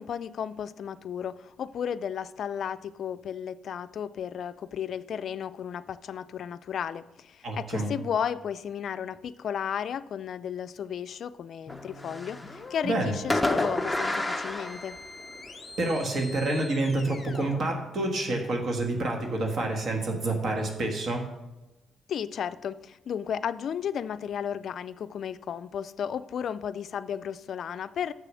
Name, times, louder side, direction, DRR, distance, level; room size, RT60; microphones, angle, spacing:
voice 1, 0.0-15.0 22.1-28.1, left 8 dB, 60° left, 15 dB, 0.3 m, -34 dB
voice 2, 7.4-7.9 12.8-13.1 15.8-21.3, right 2 dB, 55° right, 2 dB, 1.5 m, -28 dB
sound 1, 11.7-18.8, left 3 dB, 30° left, 0.9 m, -45 dB
Fireworks, 11.7-12.7 13.3-15.5, left 2 dB, 5° left, 0.7 m, -30 dB
6.9 x 6.6 x 6.2 m, 1.0 s
cardioid pair, 105°, 0 cm